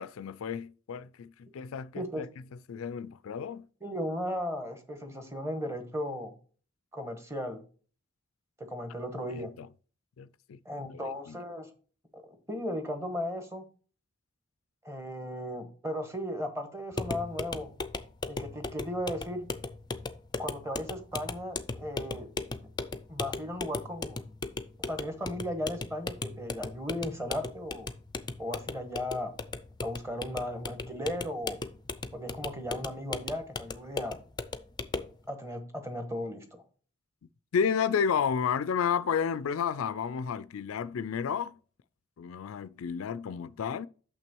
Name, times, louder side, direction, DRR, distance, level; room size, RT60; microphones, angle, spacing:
voice 1, 0.0-2.3 2.7-3.6 9.3-9.7 10.2-10.6 10.9-11.4 37.5-41.6 42.2-43.9, left 7 dB, 85° left, 0.4 m, -31 dB
voice 2, 1.9-2.3 3.8-6.3 6.9-7.6 8.6-9.5 10.6-11.7 12.1-12.2 12.5-13.6 14.8-17.7 18.2-19.5 20.4-22.3 23.1-24.2 24.9-27.9 28.4-29.3 29.8-31.6 32.1-34.2 35.3-36.6, equal, 15° right, 1.2 m, -36 dB
sound 1, 16.9-35.2, left 3 dB, 20° left, 0.5 m, -38 dB
6.6 x 6.0 x 4.5 m
head